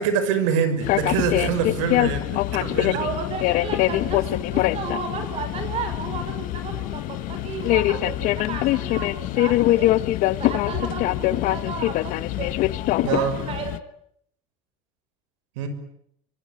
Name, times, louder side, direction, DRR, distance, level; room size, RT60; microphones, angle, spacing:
voice 1, 0.0-2.2 2.6-3.0 3.9-4.0 13.0-13.3 15.6-15.7, right 7 dB, 90° right, 10 dB, 6.2 m, -24 dB
sound 1, 0.8-13.8, left 16 dB, 55° left, 1.3 m, -24 dB
voice 2, 2.9-10.0 10.4-12.5 13.0-13.7, right 5 dB, 40° right, 8 dB, 5.9 m, -33 dB
24.0 x 22.5 x 9.8 m, 0.71 s
supercardioid pair, 125°, 16 cm